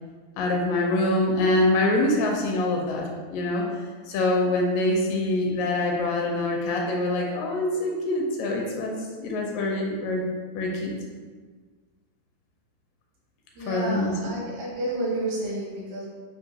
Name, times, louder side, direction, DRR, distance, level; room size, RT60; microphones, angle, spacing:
voice 1, 0.4-3.7 4.1-10.2 10.6-11.0 13.7-14.1, left 2 dB, 80° left, 0 dB, 2.1 m, -25 dB
voice 2, 13.5-16.1, right 1 dB, 80° right, -6 dB, 2.9 m, -30 dB
7.6 x 2.5 x 2.8 m, 1.5 s
omnidirectional pair, 4.1 m